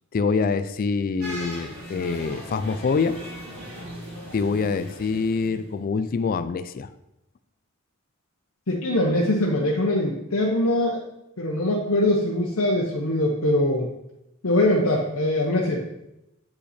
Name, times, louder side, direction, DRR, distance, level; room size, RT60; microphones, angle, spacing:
voice 1, 0.1-3.2 4.3-6.9, left 4 dB, 40° left, 12 dB, 0.4 m, -25 dB
sound 1, 1.2-5.8, equal, 75° right, 3.0 m, -39 dB
voice 2, 8.7-11.0 11.4-13.9 14.4-15.8, left 1 dB, 70° left, -2 dB, 0.9 m, -22 dB
8.1 x 5.6 x 4.2 m, 0.88 s
head